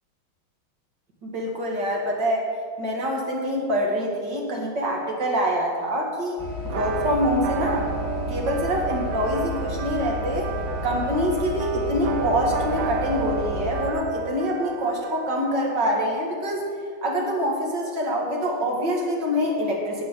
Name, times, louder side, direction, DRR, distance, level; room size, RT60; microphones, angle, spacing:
voice 1, 1.2-2.5 2.8-6.4 6.7-7.9 8.3-10.5 10.8-16.7 17.0-20.0, equal, 55° right, -1 dB, 2.4 m, -25 dB
sound 1, 6.4-13.9, equal, 15° right, 1.8 m, -31 dB
sound 2, 6.7-16.3, right 7 dB, 85° right, 1.8 m, -33 dB
16.0 x 5.4 x 6.6 m, 2.2 s
omnidirectional pair, 2.3 m